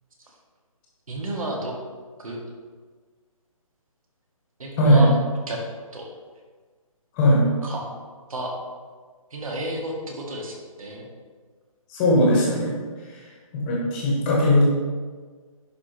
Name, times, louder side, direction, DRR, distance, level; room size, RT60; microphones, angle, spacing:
voice 1, 1.1-1.7 2.2-2.4 4.6-5.1 5.5-5.6 5.9-6.0 7.6-7.8 8.3-8.5 9.3-11.1, right 1 dB, 70° right, -1 dB, 1.9 m, -31 dB
voice 2, 4.8-5.1 7.1-7.5 11.9-12.8 13.1-13.2 13.5-14.6, equal, 15° left, -4 dB, 1.2 m, -19 dB
10.5 x 4.5 x 3.1 m, 1.5 s
hypercardioid pair, 170°, 18 cm